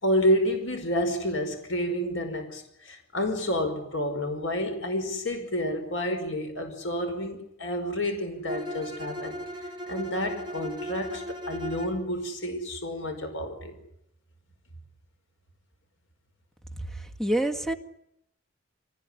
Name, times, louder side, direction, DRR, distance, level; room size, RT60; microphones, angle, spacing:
voice 1, 0.0-9.4 9.9-13.8, equal, 85° left, 6 dB, 5.1 m, -29 dB
Bowed string instrument, 8.5-12.0, equal, 25° right, 3.5 m, -37 dB
voice 2, 16.8-17.7, right 1 dB, ahead, 7 dB, 1.9 m, -28 dB
24.5 x 19.5 x 9.9 m, 0.78 s
head